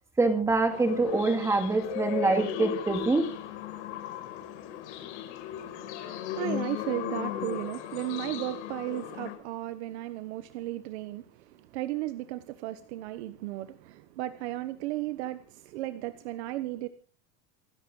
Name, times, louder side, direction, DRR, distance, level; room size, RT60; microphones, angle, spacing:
voice 1, 0.2-3.3, right 3 dB, 10° right, 2.4 m, -25 dB
sound 1, 0.7-9.4, left 11 dB, 90° left, 5.6 m, -36 dB
voice 2, 5.5-16.9, right 15 dB, 70° right, 1.2 m, -35 dB
28.0 x 10.5 x 3.9 m
cardioid pair, 180°, 34 cm